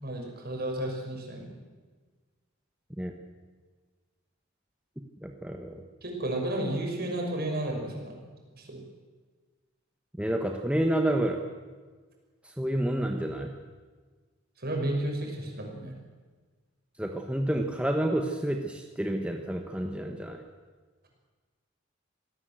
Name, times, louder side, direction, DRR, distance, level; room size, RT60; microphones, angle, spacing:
voice 1, 0.0-1.6 6.0-8.3 8.5-8.8 14.6-15.9, right 1 dB, 50° right, 1 dB, 6.2 m, -32 dB
voice 2, 5.2-5.8 10.2-11.4 12.6-13.5 17.0-20.4, right 1 dB, 5° right, 3 dB, 1.4 m, -29 dB
26.0 x 17.0 x 7.8 m, 1.4 s
head